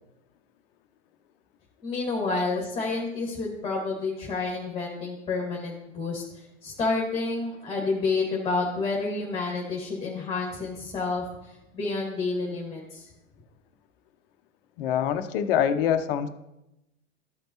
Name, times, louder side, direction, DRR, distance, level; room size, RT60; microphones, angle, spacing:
voice 1, 1.8-13.1, left 3 dB, 15° left, -2 dB, 2.0 m, -29 dB
voice 2, 14.8-16.3, left 9 dB, 45° left, 10 dB, 0.8 m, -25 dB
14.0 x 5.2 x 2.9 m, 0.89 s
hypercardioid pair, 105°, 38 cm